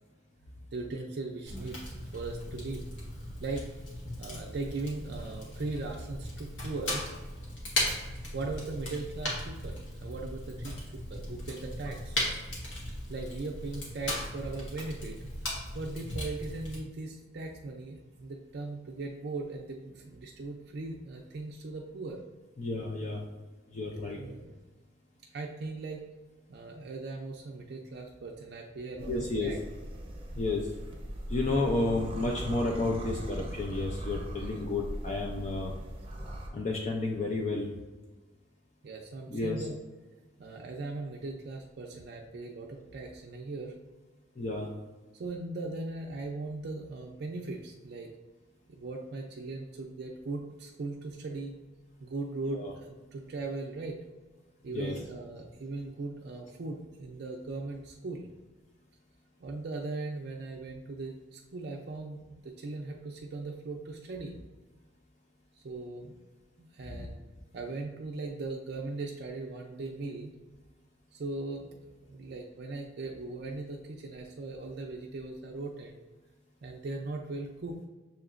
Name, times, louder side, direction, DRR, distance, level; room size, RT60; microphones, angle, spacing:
voice 1, 0.7-2.8 3.4-3.7 4.2-7.1 8.0-12.2 13.1-15.3 15.7-22.2 24.2-24.5 25.3-26.0 26.5-29.6 34.4-34.5 38.8-39.8 40.4-43.7 45.1-48.1 48.7-51.6 52.0-54.0 54.6-58.3 59.4-64.4 65.6-66.1 66.6-67.2 67.5-70.3 71.1-71.7 72.1-76.0 76.6-77.8, right 3 dB, 55° right, 0 dB, 0.4 m, -39 dB
Fire, 1.5-16.8, left 1 dB, 80° left, 1.3 m, -37 dB
voice 2, 22.6-23.2 23.7-24.2 29.1-29.5 30.4-30.7 31.3-35.7 36.5-37.7 39.3-39.6 44.4-44.7 52.5-52.7 54.7-54.9 66.9-67.1, left 2 dB, 35° left, 0 dB, 0.4 m, -31 dB
sound 1, 29.0-36.5, equal, 30° right, 0.7 m, -39 dB
6.9 x 2.9 x 2.4 m, 1.3 s
head